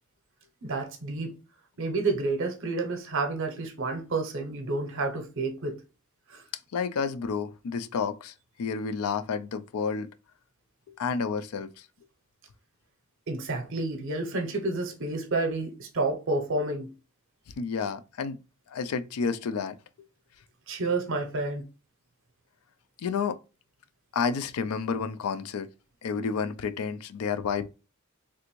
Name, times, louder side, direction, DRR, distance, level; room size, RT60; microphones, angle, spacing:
voice 1, 0.6-1.4 1.8-5.8 6.3-6.4 13.3-16.9 20.7-21.6, right 3 dB, 60° right, 0.7 m, -30 dB
voice 2, 6.7-10.1 10.9-11.9 17.6-18.4 18.7-19.8 23.0-23.4 24.1-25.7 26.0-27.7, left 5 dB, 80° left, 0.4 m, -30 dB
3.3 x 2.5 x 3.0 m
head